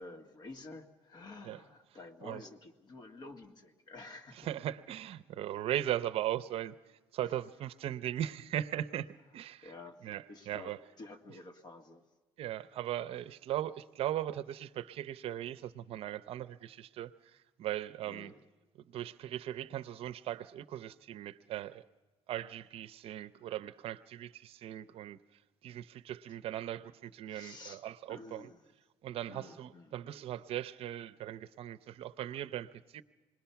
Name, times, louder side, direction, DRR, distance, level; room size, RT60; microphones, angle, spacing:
voice 1, 0.0-4.5 7.2-7.3 9.6-12.0 18.0-18.4 27.3-27.8 28.1-28.7 29.3-30.3, left 2 dB, 35° left, 2.0 m, -50 dB
voice 2, 4.4-6.7 7.1-9.1 9.3-9.7 10.0-10.8 12.4-18.3 18.8-21.8 22.3-25.2 25.6-28.5 29.0-33.0, right 12 dB, 55° right, 0.7 m, -38 dB
27.5 x 21.0 x 5.8 m
cardioid pair, 125°, 11 cm